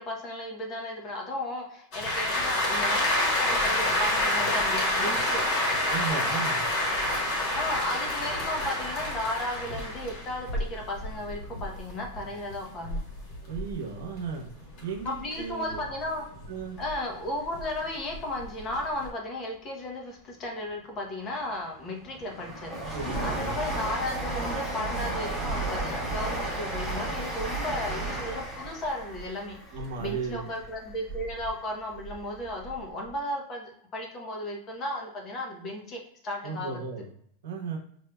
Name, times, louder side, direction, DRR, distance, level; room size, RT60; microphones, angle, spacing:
voice 1, 0.0-5.4 7.5-13.0 15.0-16.3 16.8-22.7 23.2-29.6 30.0-36.8, left 1 dB, 25° left, 1 dB, 0.8 m, -35 dB
sound 1, 1.9-14.4 14.8-16.9 17.4-19.1, left 1 dB, 45° left, 1.3 m, -28 dB
voice 2, 5.9-6.6 13.5-14.5 14.8-15.8 16.5-16.8 22.9-23.6 29.7-30.5 36.4-37.1 37.4-37.8, right 5 dB, 85° right, 1 dB, 0.9 m, -35 dB
Train, 21.3-31.5 31.9-32.8 33.1-33.2, right 2 dB, 10° left, 1.1 m, -33 dB
5.0 x 2.6 x 2.2 m, 0.66 s
supercardioid pair, 160°, 0 cm